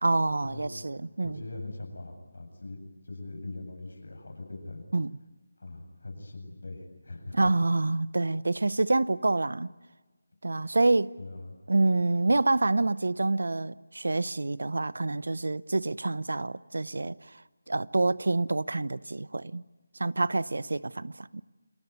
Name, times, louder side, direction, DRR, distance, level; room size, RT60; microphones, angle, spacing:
voice 1, 0.0-1.4 4.9-5.1 7.3-9.7 10.4-11.1 11.7-17.3 17.7-19.6 20.0-21.4, right 2 dB, 75° right, 0.8 m, -27 dB
voice 2, 1.0-2.8 3.0-4.8 5.6-7.5 11.2-11.6, left 2 dB, 75° left, 7.9 m, -41 dB
29.0 x 20.5 x 9.5 m
figure-of-eight pair, 160°, 0 cm